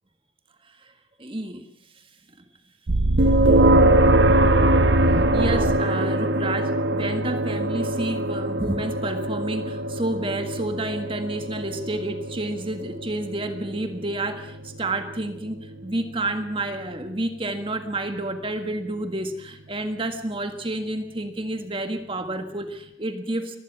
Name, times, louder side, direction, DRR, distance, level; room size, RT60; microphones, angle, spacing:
voice 1, 1.2-1.7 5.1-23.6, right 2 dB, 25° right, 7 dB, 1.7 m, -30 dB
sound 1, 2.9-5.8, right 2 dB, 80° right, 0.8 m, -21 dB
sound 2, 3.2-18.1, right 1 dB, 60° right, 1.6 m, -24 dB
24.5 x 19.5 x 6.1 m, 0.74 s
head